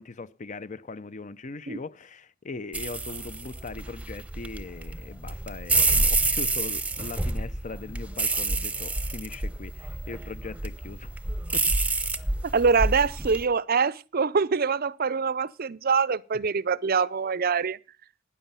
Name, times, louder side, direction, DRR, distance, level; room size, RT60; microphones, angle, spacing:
voice 1, 0.0-11.2 11.5-11.7, left 3 dB, 35° left, 0.5 m, -40 dB
sound 1, 2.7-13.4, right 3 dB, 5° right, 0.9 m, -28 dB
voice 2, 12.4-17.8, right 5 dB, 45° right, 0.6 m, -24 dB
13.0 x 9.8 x 5.6 m
head